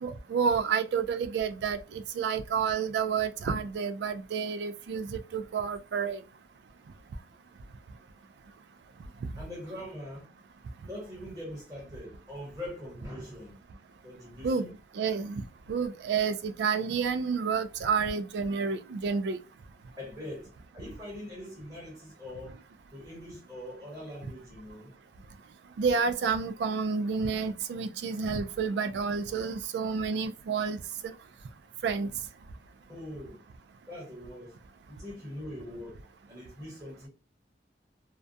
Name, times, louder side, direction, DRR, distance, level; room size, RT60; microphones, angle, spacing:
voice 1, 0.0-6.2 9.2-9.3 14.4-14.7 14.9-15.4 15.7-19.4 25.8-31.1 31.8-32.1, right 5 dB, 70° right, 0.3 m, -30 dB
voice 2, 9.3-10.3 10.8-13.6 14.0-14.7 20.0-22.6 22.9-24.9 32.9-33.4 33.9-34.6 34.9-37.1, left 1 dB, 20° right, 1.2 m, -42 dB
2.3 x 2.1 x 2.6 m
head